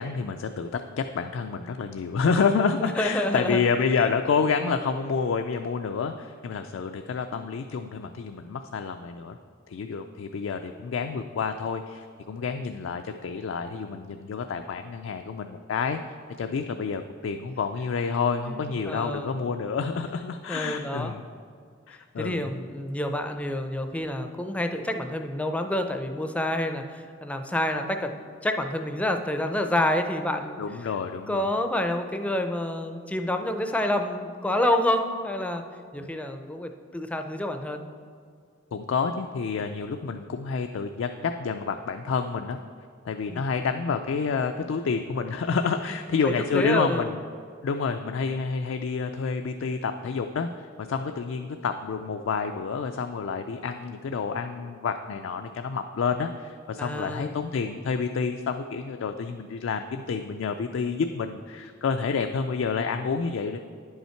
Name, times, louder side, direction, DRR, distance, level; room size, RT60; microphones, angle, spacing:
voice 1, 0.0-9.4 9.7-21.2 21.9-22.5 30.6-31.5 36.0-36.1 38.7-42.6 43.0-47.2 47.6-63.6, left 5 dB, 70° left, 6 dB, 0.3 m, -29 dB
voice 2, 2.8-3.6 4.0-4.1 18.4-19.4 20.5-21.1 22.2-30.6 31.3-35.6 35.9-37.9 43.3-43.5 46.2-47.1 56.8-57.3, left 1 dB, 5° left, 6 dB, 0.4 m, -28 dB
9.9 x 5.6 x 4.4 m, 2.2 s
head